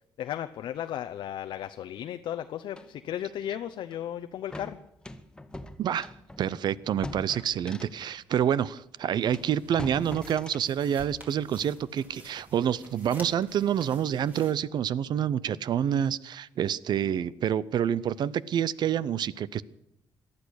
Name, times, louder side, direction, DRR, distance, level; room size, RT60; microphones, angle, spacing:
voice 1, 0.2-4.8, left 11 dB, 70° left, 8 dB, 0.7 m, -35 dB
sound 1, 2.7-2.9 3.9-4.0 4.5-8.1 8.8-8.9 9.3-10.7, left 1 dB, 10° left, 0.9 m, -42 dB
voice 2, 5.8-6.1 6.4-19.6, right 9 dB, 60° right, 20 dB, 0.6 m, -28 dB
sound 2, 9.3-14.5, right 1 dB, 20° right, 4.1 m, -49 dB
18.5 x 12.0 x 6.4 m, 0.82 s
cardioid pair, 110°, 8 cm